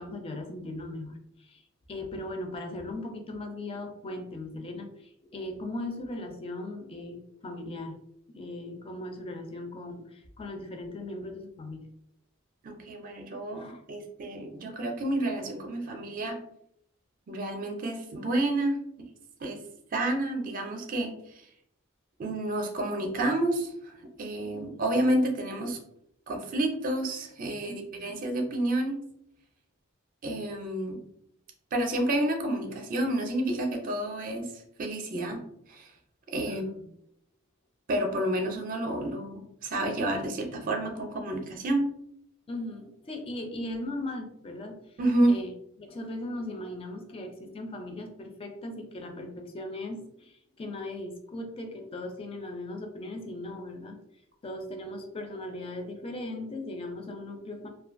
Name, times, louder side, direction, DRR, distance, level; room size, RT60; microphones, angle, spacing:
voice 1, 0.0-1.6 1.9-8.0 8.3-11.8 13.6-13.8 24.5-25.1 27.6-28.2 36.5-36.8 42.5-45.0 45.3-45.5 45.8-54.0 54.4-57.7, left 1 dB, 25° left, 4 dB, 0.4 m, -38 dB
voice 2, 12.6-16.4 17.3-18.8 19.4-19.6 19.9-21.5 22.2-23.9 24.2-25.8 26.3-29.0 30.2-31.0 31.7-35.4 35.7-35.9 36.3-36.7 37.9-41.9 45.0-45.4, right 1 dB, 40° right, 3 dB, 0.4 m, -29 dB
2.4 x 2.3 x 2.5 m, 0.73 s
head